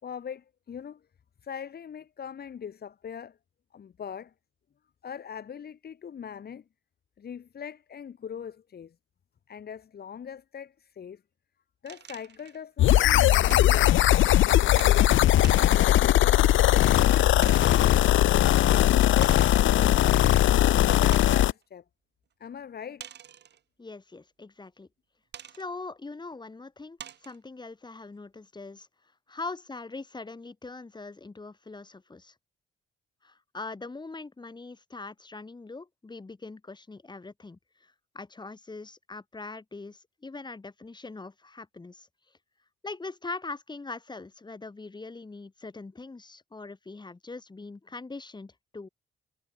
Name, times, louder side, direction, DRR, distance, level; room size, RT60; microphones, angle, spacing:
voice 1, 0.0-1.0 1.4-3.4 3.7-4.3 5.0-6.6 7.2-8.9 9.5-11.2 11.8-14.0 14.5-18.0 18.5-20.3 20.8-21.8 22.4-23.1, left 8 dB, 50° left, 5.0 m, -41 dB
sound 1, 11.9-12.6 13.3-13.7 14.8-15.0 15.4-16.0 16.7-16.8 17.4-18.0 19.2-19.8 20.4-20.5 21.1-21.5 23.0-23.6 25.3-25.6 26.3-26.4 27.0-27.4, right 9 dB, 60° right, 3.1 m, -44 dB
sound 2, 12.8-21.5, left 13 dB, 75° left, 1.3 m, -20 dB
voice 2, 23.8-24.9 25.5-28.9 29.3-32.3 33.2-42.1 42.8-48.9, left 3 dB, 20° left, 4.0 m, -42 dB
cardioid pair, 90°, 20 cm